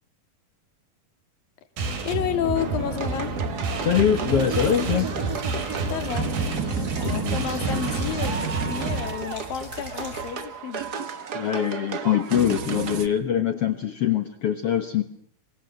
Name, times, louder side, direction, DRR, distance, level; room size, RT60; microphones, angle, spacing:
sound 1, 1.8-9.1, right 3 dB, 90° right, 5.0 m, -29 dB
voice 1, 2.1-3.4 5.9-6.3 6.6-11.1, left 9 dB, 80° left, 9 dB, 3.8 m, -31 dB
sound 2, 2.5-13.1, right 6 dB, 60° right, 1.0 m, -32 dB
voice 2, 3.8-5.1 7.0-7.4 11.3-15.0, left 9 dB, 55° left, 8 dB, 1.8 m, -23 dB
sound 3, 4.4-10.3, right 2 dB, 25° right, 6.9 m, -40 dB
28.0 x 24.0 x 7.6 m, 0.62 s
omnidirectional pair, 4.0 m